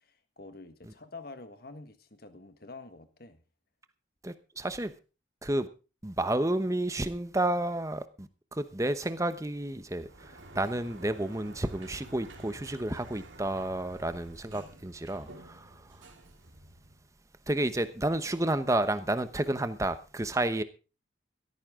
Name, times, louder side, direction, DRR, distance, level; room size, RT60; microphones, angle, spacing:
voice 1, 0.0-3.4, left 3 dB, 50° left, 1.6 m, -47 dB
voice 2, 4.2-4.9 5.4-5.7 6.0-16.0 17.5-20.6, right 1 dB, 15° right, 0.9 m, -31 dB
Sliding door, 10.0-17.1, right 1 dB, 75° right, 3.0 m, -51 dB
16.0 x 14.0 x 3.8 m
head